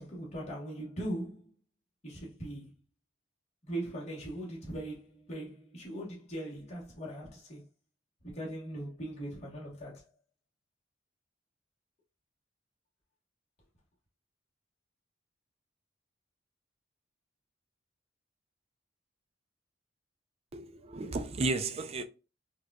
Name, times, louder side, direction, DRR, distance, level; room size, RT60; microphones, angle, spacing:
voice 1, 0.0-1.5 2.0-2.7 3.6-7.6 8.2-10.0, right 1 dB, 35° left, 1.2 m, -40 dB
voice 2, 20.5-22.0, right 3 dB, 30° right, 0.4 m, -33 dB
4.7 x 2.3 x 2.3 m
head